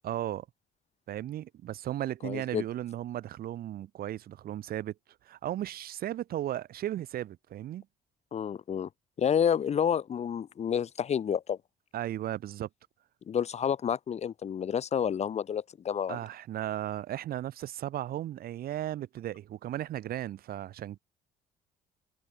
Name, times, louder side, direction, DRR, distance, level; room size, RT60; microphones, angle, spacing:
voice 1, 0.0-0.5 1.1-4.9 5.3-7.9 11.9-12.7 16.1-21.0, right 12 dB, 60° right, 1.7 m, -35 dB
voice 2, 2.2-2.6 8.3-8.9 9.2-11.6 13.3-16.2, left 8 dB, 40° left, 1.3 m, -29 dB
cardioid pair, 110°, 17 cm